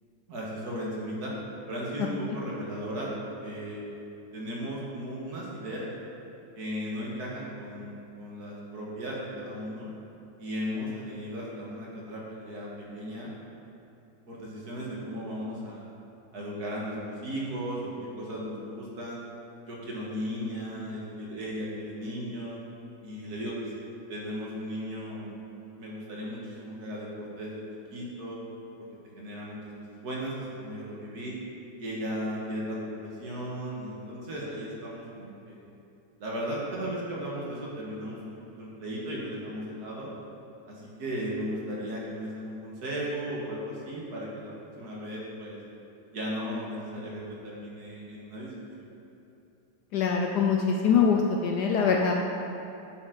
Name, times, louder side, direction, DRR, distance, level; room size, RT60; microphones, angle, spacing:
voice 1, 0.3-1.3 1.7-3.8 4.3-5.9 6.6-9.9 10.4-13.3 14.3-15.9 16.3-19.2 19.7-22.6 23.0-23.7 24.1-25.4 25.8-27.6 27.9-28.4 29.2-29.6 29.9-31.3 31.8-35.7 36.2-40.1 40.7-45.6 46.1-48.5 48.8-48.9, equal, 55° right, -4 dB, 1.8 m, -36 dB
voice 2, 49.9-52.1, left 6 dB, 70° left, 1 dB, 1.0 m, -23 dB
8.8 x 6.9 x 3.8 m, 2.8 s
omnidirectional pair, 2.1 m